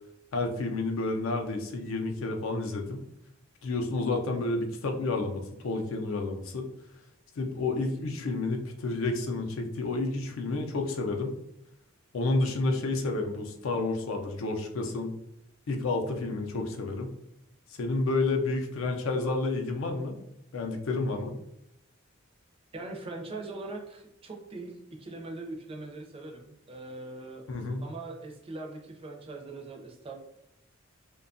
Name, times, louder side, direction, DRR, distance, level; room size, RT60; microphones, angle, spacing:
voice 1, 0.3-3.0 3.6-6.7 7.4-11.4 12.1-15.1 15.7-17.1 17.8-20.2 20.5-21.3 27.5-27.8, left 3 dB, 75° left, 4 dB, 0.4 m, -30 dB
voice 2, 22.7-27.4 27.8-30.1, right 2 dB, 30° right, 2 dB, 0.4 m, -41 dB
2.6 x 2.2 x 2.5 m, 0.83 s
head